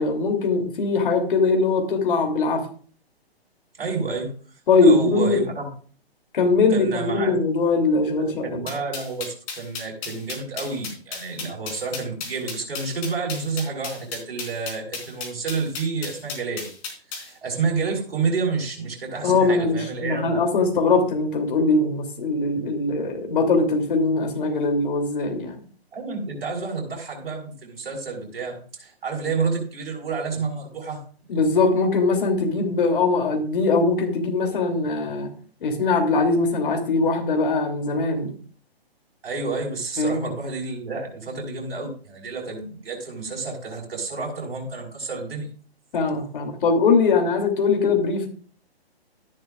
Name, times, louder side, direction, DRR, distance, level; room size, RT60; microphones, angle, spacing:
voice 1, 0.0-2.6 4.7-5.4 6.3-8.6 19.2-25.6 31.3-35.3 35.6-38.3 40.0-40.2 45.9-48.3, left 3 dB, 55° left, 3 dB, 3.1 m, -21 dB
voice 2, 3.8-4.3 4.8-5.7 6.7-7.3 8.1-16.7 17.1-20.4 25.9-31.0 31.3-31.4 39.2-45.5, right 4 dB, 60° right, 0 dB, 5.1 m, -29 dB
sound 1, 8.7-17.3, left 5 dB, 30° left, 3.8 m, -34 dB
13.0 x 10.5 x 2.5 m, 0.43 s
figure-of-eight pair, 135°, 32 cm